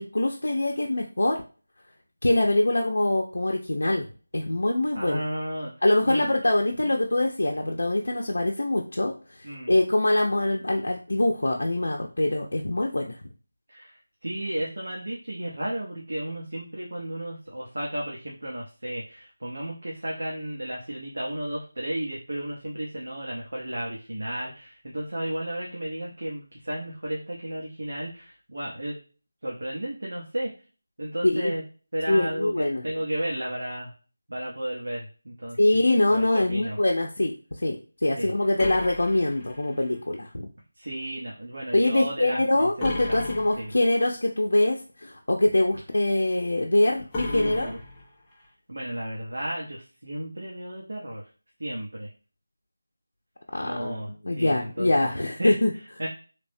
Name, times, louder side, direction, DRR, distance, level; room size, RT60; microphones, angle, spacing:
voice 1, 0.0-1.4 2.2-4.1 4.3-5.2 5.8-9.1 9.7-13.2 31.2-31.5 32.1-32.8 35.6-37.3 37.6-40.5 41.7-47.7 53.5-55.7, left 1 dB, 80° left, 0 dB, 0.5 m, -24 dB
voice 2, 4.9-5.7 6.0-6.3 6.8-6.9 9.4-9.7 13.7-29.0 29.4-30.5 31.0-31.6 31.9-33.9 34.3-35.6 36.1-36.8 38.2-38.3 40.8-42.7 43.1-43.2 43.6-43.7 47.2-47.8 48.7-51.2 51.6-52.1 53.6-55.6 56.0-56.1, right 1 dB, 75° right, -3 dB, 0.8 m, -33 dB
sound 1, 38.6-40.0 42.8-44.0 47.1-48.5, left 2 dB, 10° left, 0.4 m, -35 dB
3.2 x 2.1 x 2.6 m, 0.36 s
figure-of-eight pair, 180°, 0 cm